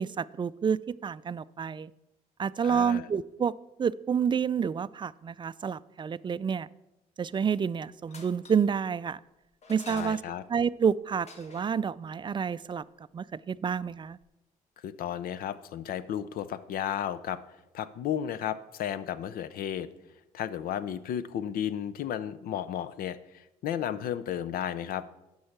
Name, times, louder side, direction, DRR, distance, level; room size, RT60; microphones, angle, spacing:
voice 1, 0.0-1.9 2.4-3.5 3.8-6.7 7.2-9.2 9.7-10.2 10.5-12.8 13.1-14.2, right 7 dB, 30° right, 18 dB, 0.3 m, -29 dB
voice 2, 2.6-3.1 9.9-10.4 14.8-17.4 17.7-19.9 20.3-25.0, left 10 dB, 75° left, 15 dB, 0.6 m, -33 dB
sound 1, 7.3-7.7 8.0-8.8 9.6-10.5 11.2-11.8 13.9-14.0 14.2-14.3, left 3 dB, 45° left, 1.4 m, -50 dB
11.0 x 5.6 x 5.9 m, 0.95 s
supercardioid pair, 70°, 15 cm